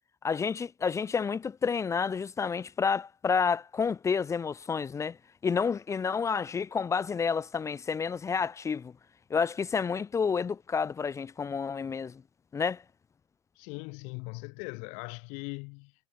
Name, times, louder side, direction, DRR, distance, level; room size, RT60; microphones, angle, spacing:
voice 1, 0.2-5.2 5.4-8.9 9.3-12.2 12.5-12.8, left 6 dB, 20° left, 0.9 m, -29 dB
voice 2, 13.6-15.9, left 33 dB, 55° left, 6.4 m, -40 dB
hypercardioid pair, 80°, 14 cm